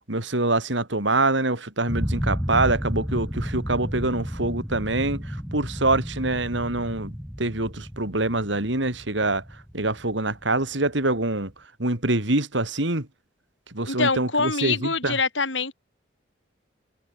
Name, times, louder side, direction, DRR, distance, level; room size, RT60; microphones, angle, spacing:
voice 1, 0.1-11.5 11.8-13.1 13.7-15.2, right 2 dB, 70° right, 3.4 m, -25 dB
sound 1, 1.9-10.7, equal, ahead, 1.7 m, -32 dB
voice 2, 13.9-15.7, left 4 dB, 75° left, 7.8 m, -25 dB
head